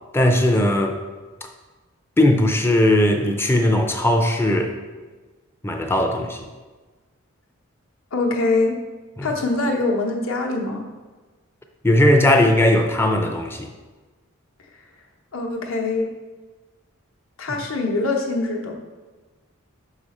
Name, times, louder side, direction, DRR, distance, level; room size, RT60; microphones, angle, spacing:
voice 1, 0.1-1.0 2.2-4.7 5.6-6.4 9.2-9.3 11.8-13.7, left 1 dB, 10° left, 4 dB, 0.4 m, -18 dB
voice 2, 8.1-8.8 9.2-10.9 15.3-16.1 17.4-18.7, left 3 dB, 65° left, 1 dB, 0.9 m, -23 dB
5.7 x 4.9 x 4.2 m, 1.3 s
head